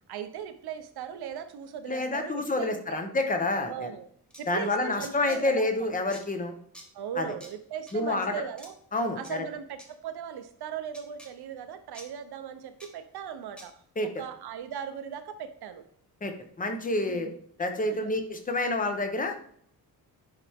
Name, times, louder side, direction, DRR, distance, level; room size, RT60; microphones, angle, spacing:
voice 1, 0.1-3.0 3.7-4.1 4.4-6.0 6.9-8.7 9.2-13.7 14.2-15.8 17.1-17.3 17.9-18.1, right 8 dB, 80° right, 10 dB, 0.9 m, -38 dB
voice 2, 1.9-3.9 4.5-6.5 7.2-7.3 7.9-8.3 8.9-9.4 14.0-14.2 16.2-17.3 17.6-19.3, left 2 dB, 20° left, 6 dB, 0.9 m, -28 dB
sound 1, 4.3-4.4 5.3-5.4 6.1-6.2 6.7-6.9 7.4-7.5 7.9-8.0 8.6-8.7 9.2-9.3 9.8-9.9 10.9-11.3 11.9-12.1 12.8-12.9 13.6-13.7, equal, 5° left, 1.2 m, -47 dB
11.0 x 4.4 x 3.6 m, 0.63 s
wide cardioid pair, 180°, 38 cm